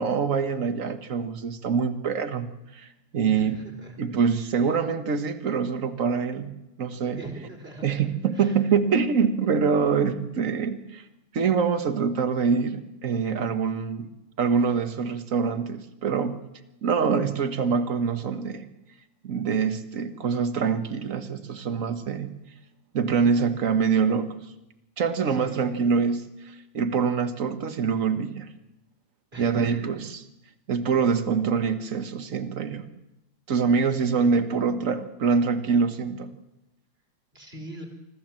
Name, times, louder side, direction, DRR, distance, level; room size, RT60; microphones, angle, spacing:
voice 1, 0.0-2.5 2.7-3.6 4.0-6.5 6.8-7.2 7.8-11.0 11.3-14.1 14.4-16.4 16.8-18.7 19.2-22.3 22.9-24.4 25.0-28.5 29.4-30.2 30.7-32.8 33.5-36.3, right 5 dB, 40° right, 9 dB, 1.5 m, -25 dB
voice 2, 3.3-4.0 4.3-4.5 7.2-8.0 8.3-8.6 25.2-25.6 29.3-29.8 37.3-37.9, right 1 dB, 25° right, 3 dB, 4.4 m, -42 dB
25.5 x 15.0 x 7.6 m, 0.91 s
omnidirectional pair, 2.4 m